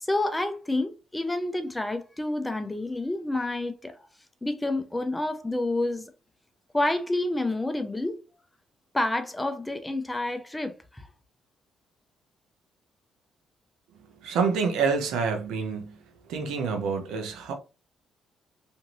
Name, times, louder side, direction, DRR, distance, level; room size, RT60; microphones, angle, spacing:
voice 1, 0.0-4.0 4.4-6.1 6.7-8.1 8.9-11.1, left 2 dB, 15° left, 0.5 m, -29 dB
voice 2, 14.2-16.0 16.3-17.5, right 5 dB, 90° right, 0.6 m, -27 dB
2.6 x 2.5 x 3.0 m
cardioid pair, 90°, 0 cm